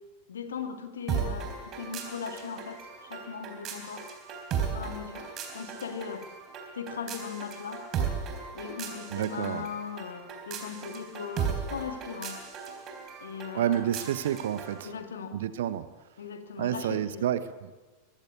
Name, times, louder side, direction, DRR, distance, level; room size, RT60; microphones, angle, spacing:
voice 1, 0.3-4.1 4.6-6.3 6.7-7.8 8.5-12.4 13.2-13.9 14.8-15.4 16.2-17.3, left 6 dB, 65° left, 7 dB, 2.2 m, -39 dB
sound 1, 1.1-14.8, right 7 dB, 30° right, 3.8 m, -36 dB
voice 2, 9.1-9.7 13.5-14.9 15.3-15.9 16.6-17.7, right 11 dB, 60° right, 14 dB, 1.1 m, -29 dB
22.0 x 15.5 x 8.4 m, 1.3 s
figure-of-eight pair, 90°, 0 cm